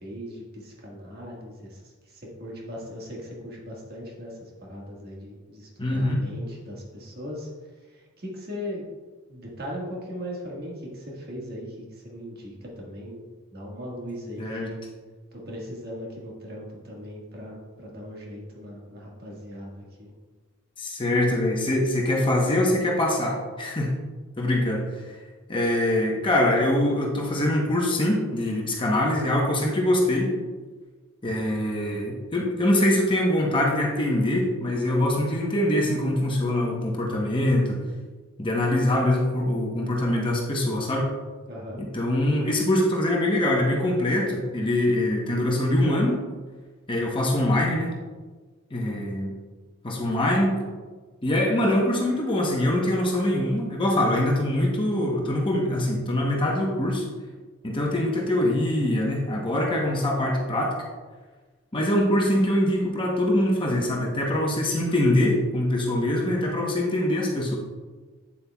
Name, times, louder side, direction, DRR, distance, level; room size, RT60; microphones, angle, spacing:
voice 1, 0.0-7.5 7.8-8.9 9.3-14.8 15.3-20.1 41.5-41.8, equal, 45° right, -2 dB, 1.6 m, -39 dB
voice 2, 5.8-6.2 14.4-14.7 20.8-23.9 24.4-25.2 25.5-30.3 31.2-37.8 38.4-41.1 41.8-46.2 46.9-47.9 48.7-49.3 49.8-50.6 51.2-57.1 57.6-60.8 61.7-67.6, left 1 dB, 25° left, -2 dB, 0.9 m, -23 dB
8.7 x 7.8 x 2.3 m, 1.4 s
head